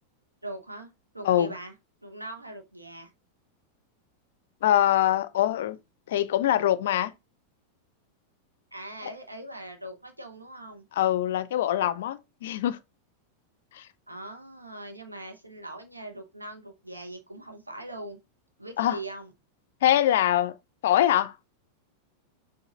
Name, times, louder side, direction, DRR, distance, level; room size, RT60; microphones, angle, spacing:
voice 1, 0.4-1.7 2.0-3.1 8.7-10.8 14.1-18.2 18.6-19.3, right 1 dB, 85° right, 0.9 m, -41 dB
voice 2, 4.6-5.8 6.1-7.1 11.0-12.8 13.7-13.9 18.8-19.0 19.8-20.6 20.8-21.3, left 12 dB, 55° left, 0.4 m, -23 dB
6.3 x 2.5 x 2.9 m
figure-of-eight pair, 90°, 0 cm